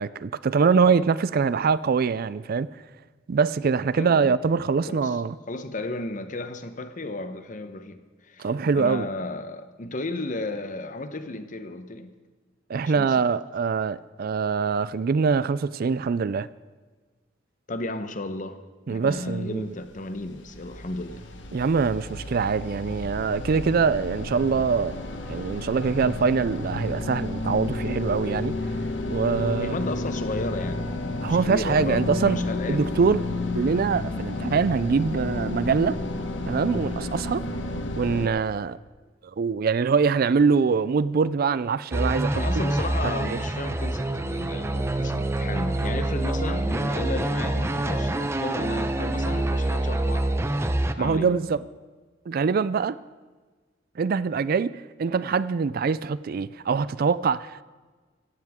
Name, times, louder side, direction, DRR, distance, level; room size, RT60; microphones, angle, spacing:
voice 1, 0.0-2.7 3.3-5.4 8.4-9.1 12.7-16.5 18.9-19.6 21.5-25.0 25.3-28.5 29.1-29.8 31.2-32.4 32.7-33.3 33.5-36.0 36.5-37.4 37.9-38.8 39.4-42.4 43.0-43.4 51.0-51.6 52.3-53.0 54.0-54.7 55.0-57.6, right 5 dB, 50° right, 0.4 m, -23 dB
voice 2, 4.0-4.3 4.9-5.2 5.5-12.1 12.8-13.1 17.7-21.2 29.6-30.8 31.2-32.9 42.3-50.5 51.0-51.3, left 2 dB, 45° left, 0.9 m, -34 dB
sound 1, 19.8-38.3, left 2 dB, 70° left, 1.3 m, -31 dB
sound 2, 41.9-50.9, right 1 dB, 15° right, 0.6 m, -26 dB
17.5 x 15.0 x 3.6 m
head